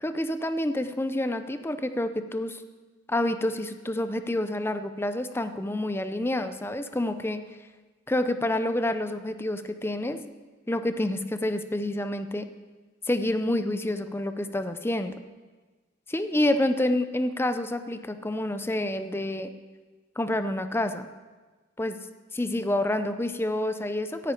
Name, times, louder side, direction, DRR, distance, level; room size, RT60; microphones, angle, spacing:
voice 1, 0.0-2.6 3.1-7.4 8.1-10.2 10.7-12.5 13.1-15.1 16.1-19.5 20.2-21.1 21.8-22.0 22.3-24.3, left 1 dB, 15° left, 10 dB, 0.6 m, -28 dB
17.0 x 10.0 x 4.5 m, 1.3 s
head